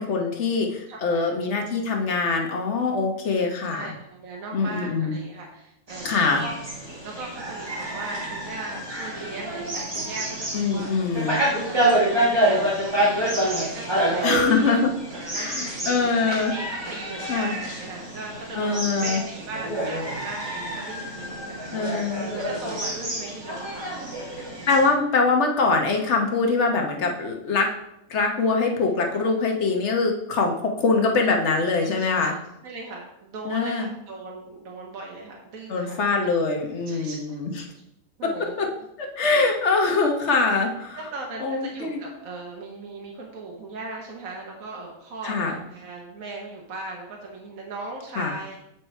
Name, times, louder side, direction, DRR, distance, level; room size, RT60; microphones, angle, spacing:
voice 1, 0.0-3.9 4.5-5.1 6.0-6.4 10.5-11.4 14.2-14.9 15.3-16.5 17.3-17.5 18.5-19.2 21.7-22.3 24.7-27.7 28.1-32.3 33.4-33.9 35.7-37.7 38.2-38.3 38.6-38.7 39.0-41.0 41.4-42.0 45.2-45.6 48.2-48.3, left 4 dB, 55° left, 2 dB, 1.3 m, -23 dB
voice 2, 0.9-1.4 3.3-6.6 7.0-10.5 10.7-10.9 11.6-14.9 15.1-16.2 16.5-24.4 28.7-28.8 29.3-29.5 31.9-32.3 32.6-36.0 36.9-37.4 38.2-38.7 39.9-40.0 41.0-48.6, right 3 dB, 75° right, -1 dB, 1.5 m, -38 dB
sound 1, 5.9-24.9, right 1 dB, 20° right, 1.5 m, -28 dB
7.9 x 4.7 x 4.4 m, 0.81 s
omnidirectional pair, 1.5 m